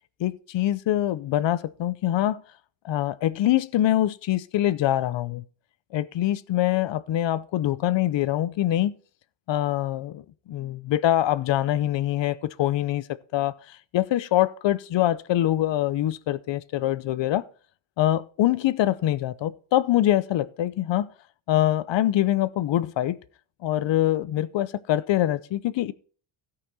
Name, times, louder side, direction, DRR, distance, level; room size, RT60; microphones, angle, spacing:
voice 1, 0.2-2.4 2.8-5.4 5.9-9.0 9.5-10.2 10.5-13.1 13.3-17.4 18.0-21.1 21.5-23.2 23.6-25.9, left 13 dB, 65° left, 0.7 m, -24 dB
16.5 x 5.8 x 4.2 m
wide cardioid pair, 160°, 47 cm